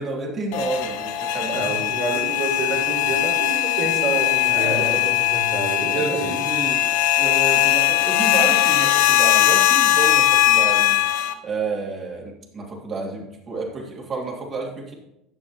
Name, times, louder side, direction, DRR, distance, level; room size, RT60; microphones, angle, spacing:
voice 1, 0.0-1.8 4.5-5.0 5.9-11.0 11.4-14.9, right 3 dB, 40° right, -1 dB, 2.7 m, -30 dB
sound 1, 0.5-11.3, left 13 dB, 70° left, 0.6 m, -20 dB
voice 2, 1.5-6.3, right 2 dB, 80° right, -9 dB, 3.8 m, -28 dB
10.5 x 7.6 x 3.0 m, 0.85 s
hypercardioid pair, 75°, 0 cm